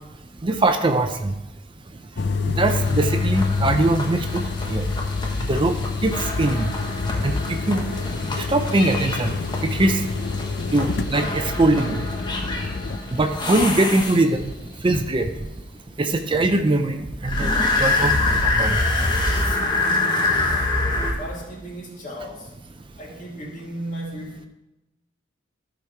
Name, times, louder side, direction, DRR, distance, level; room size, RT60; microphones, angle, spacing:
voice 1, 0.4-1.3 2.6-4.4 4.7-4.9 5.5-5.7 6.0-6.7 7.2-7.8 8.4-9.4 9.6-10.0 10.7-12.0 13.1-14.5 14.8-15.3 16.0-18.1 18.5-18.8, right 2 dB, 25° right, 7 dB, 0.5 m, -21 dB
sound 1, 2.1-13.0, left 4 dB, 60° left, 0.5 m, -27 dB
sound 2, 2.6-14.5 17.2-21.1, left 2 dB, 25° left, 1.3 m, -26 dB
voice 2, 21.2-22.6 23.0-24.5, right 1 dB, 45° left, -2 dB, 2.3 m, -35 dB
13.5 x 5.1 x 4.6 m, 0.93 s
head